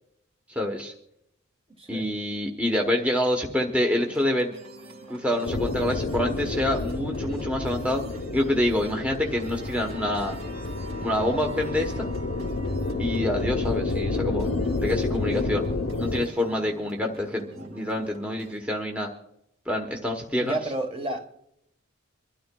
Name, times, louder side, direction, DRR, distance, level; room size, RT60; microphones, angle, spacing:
voice 1, 0.5-0.9 1.9-4.6 5.1-8.0 8.3-10.3 11.0-12.1 13.0-15.6 16.0-19.1 19.7-20.6, left 1 dB, 5° right, 1.0 m, -27 dB
voice 2, 1.8-2.1 20.4-21.3, right 2 dB, 25° right, 1.3 m, -31 dB
sound 1, 3.9-18.6, right 2 dB, 65° right, 2.0 m, -45 dB
sound 2, 5.4-16.2, left 3 dB, 85° left, 0.8 m, -30 dB
26.0 x 12.5 x 2.3 m
head